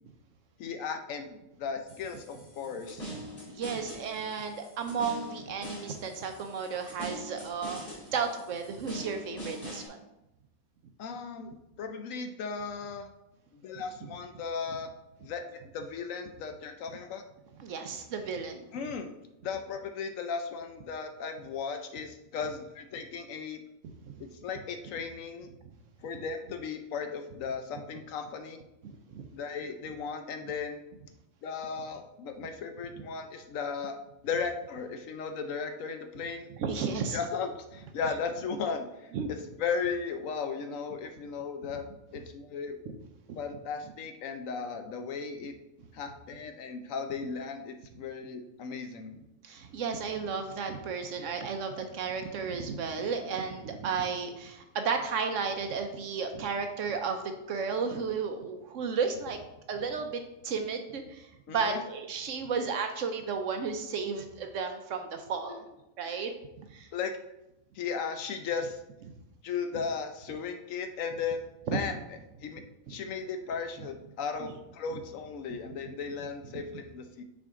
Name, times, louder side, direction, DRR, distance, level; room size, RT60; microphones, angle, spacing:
voice 1, 0.6-3.2 11.0-13.1 13.5-14.9 15.2-17.2 18.7-23.6 24.2-25.5 26.0-28.6 29.3-30.8 31.4-34.0 34.2-36.5 37.1-41.8 42.1-42.8 43.3-45.5 45.9-49.1 61.5-61.8 65.5-65.6 66.0-66.2 66.9-67.1 67.7-68.8 69.4-71.4 71.7-72.6 72.9-77.2, left 5 dB, 70° left, 7 dB, 0.9 m, -36 dB
sound 1, 1.9-9.9, equal, 35° left, 2.5 m, -44 dB
voice 2, 3.5-10.0 17.6-18.6 24.1-24.2 28.8-29.3 36.6-37.2 39.1-39.3 43.3-43.4 49.4-59.4 59.7-65.6 66.0-66.3 66.7-66.9 71.7-71.8 74.9-75.0 76.5-76.6, right 5 dB, 65° right, 6 dB, 0.9 m, -33 dB
6.1 x 4.5 x 3.6 m, 0.91 s
omnidirectional pair, 1.6 m